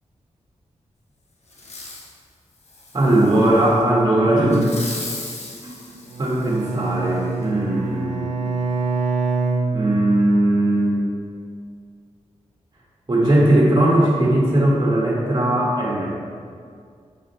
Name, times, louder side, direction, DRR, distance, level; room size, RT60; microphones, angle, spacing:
Fireworks, 1.5-2.1 2.6-3.7 4.5-6.9 7.4-7.5, left 2 dB, 65° left, 1.1 m, -36 dB
voice 1, 2.9-4.7 5.6-5.8 6.2-8.3 9.7-11.0 13.1-16.1, right 1 dB, 35° right, -5 dB, 1.4 m, -18 dB
Bowed string instrument, 6.1-10.5, right 4 dB, 85° right, 0.6 m, -25 dB
6.9 x 5.0 x 4.2 m, 2.2 s
wide cardioid pair, 125°, 12 cm